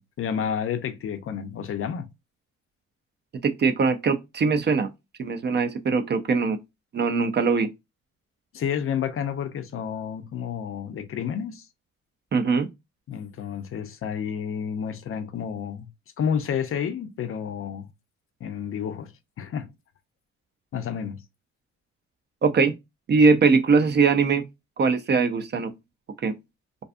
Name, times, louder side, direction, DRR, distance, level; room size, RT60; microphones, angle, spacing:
voice 1, 0.0-2.1 8.5-11.7 13.1-15.9 16.2-17.9 18.4-19.1 19.4-19.7 20.7-21.2, left 8 dB, 45° left, 0.4 m, -30 dB
voice 2, 3.4-4.9 5.2-6.6 6.9-7.7 12.3-12.7 22.4-22.7 23.1-24.4 24.8-25.7 26.2-26.3, right 4 dB, 35° right, 0.4 m, -21 dB
2.5 x 2.3 x 2.4 m
cardioid pair, 90°, 30 cm